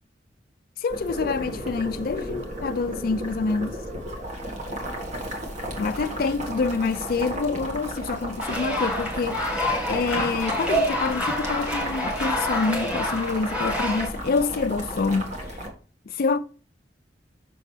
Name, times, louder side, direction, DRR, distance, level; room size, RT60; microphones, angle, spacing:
voice 1, 0.8-3.8 5.8-15.3 16.1-16.4, left 4 dB, 55° left, 0.4 m, -27 dB
Boiling, 0.9-15.7, equal, 45° right, 1.8 m, -34 dB
sound 1, 8.4-14.1, left 1 dB, 5° right, 1.9 m, -27 dB
6.5 x 6.1 x 3.3 m
head